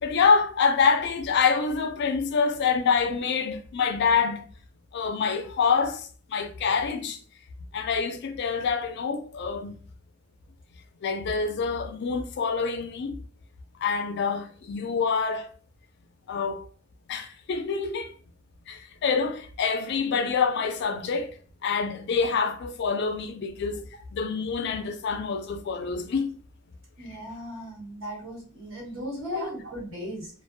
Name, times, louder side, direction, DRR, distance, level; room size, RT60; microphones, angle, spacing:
voice 1, 0.0-4.5 4.9-7.2 7.7-9.7 11.0-13.1 13.8-15.5 16.3-16.6 17.1-18.1 18.7-21.3 21.6-23.8 24.1-26.4 29.3-29.5, left 5 dB, 55° left, 0.4 m, -26 dB
voice 2, 27.0-30.3, equal, 75° right, 1.5 m, -37 dB
2.4 x 2.1 x 2.5 m
head